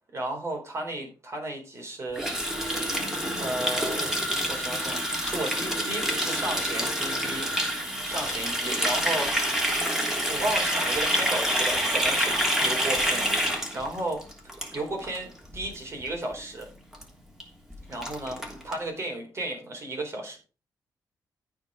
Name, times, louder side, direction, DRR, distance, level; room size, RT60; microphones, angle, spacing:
voice 1, 0.1-2.3 3.4-4.2 4.5-7.5 8.0-9.3 10.3-13.3 13.7-14.2 14.7-15.3 15.5-16.7 17.9-20.4, right 2 dB, 40° right, 1 dB, 4.1 m, -33 dB
Water tap faucet, 2.1-15.2 15.4-15.7 16.0-16.3 16.6-16.7 16.9-17.0 17.4-17.5 17.7-18.8, equal, 5° right, 3.1 m, -27 dB
14.0 x 4.7 x 5.0 m, 0.34 s
cardioid pair, 105°, 7 cm